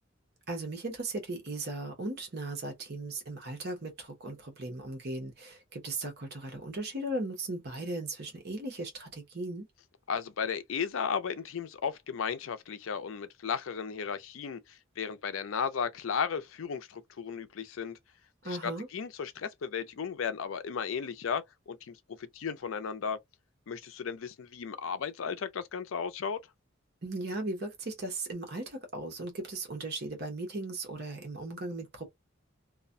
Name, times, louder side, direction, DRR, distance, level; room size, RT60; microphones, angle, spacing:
voice 1, 0.5-9.7 18.4-18.9 27.0-32.0, right 2 dB, 55° right, 0.8 m, -37 dB
voice 2, 10.1-18.0 18.4-23.2 23.7-26.4, left 6 dB, 80° left, 0.4 m, -35 dB
2.3 x 2.1 x 2.5 m
head